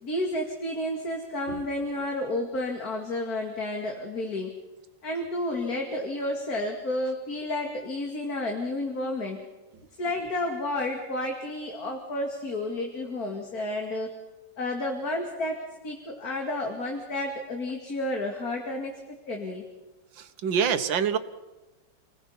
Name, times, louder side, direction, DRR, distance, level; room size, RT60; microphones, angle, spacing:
voice 1, 0.0-4.6 5.0-9.4 10.0-14.1 14.6-19.0 19.3-19.6, left 1 dB, 50° left, 2 dB, 2.8 m, -31 dB
voice 2, 20.2-21.2, right 7 dB, 80° right, 11 dB, 1.9 m, -26 dB
29.0 x 20.0 x 5.6 m, 1.1 s
omnidirectional pair, 2.0 m